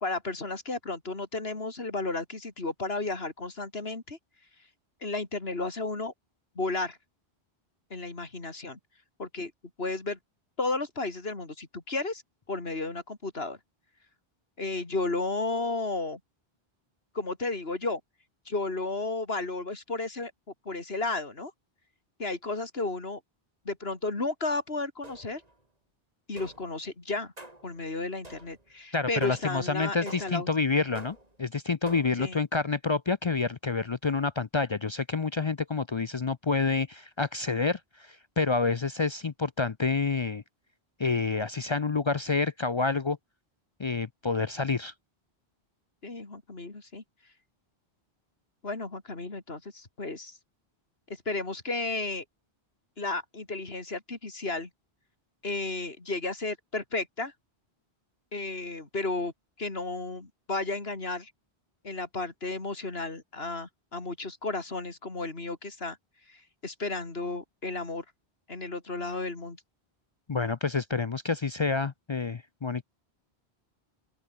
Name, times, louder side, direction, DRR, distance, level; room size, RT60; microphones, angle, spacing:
voice 1, 0.0-4.2 5.0-6.1 6.5-7.0 7.9-8.8 9.2-9.5 9.8-10.2 10.6-12.2 12.5-13.6 14.6-16.2 17.1-18.0 18.5-20.3 20.6-21.5 22.2-23.2 23.6-25.4 26.3-27.3 27.6-30.5 32.2-32.4 46.0-47.0 48.6-50.4 51.2-52.2 53.0-54.7 55.4-57.3 58.3-59.3 59.6-61.3 61.8-66.0 66.3-68.0 68.5-69.6, left 3 dB, 70° left, 3.3 m, -33 dB
sound 1, 25.0-25.5 26.4-26.8 27.4-27.8 28.2-28.7 29.2-29.6 30.1-30.5 30.9-31.4 31.9-32.3, right 1 dB, 35° right, 4.0 m, -47 dB
voice 2, 28.9-40.4 41.0-43.2 43.8-44.9 70.3-72.8, left 4 dB, 40° left, 0.4 m, -28 dB
open air
omnidirectional pair, 1.1 m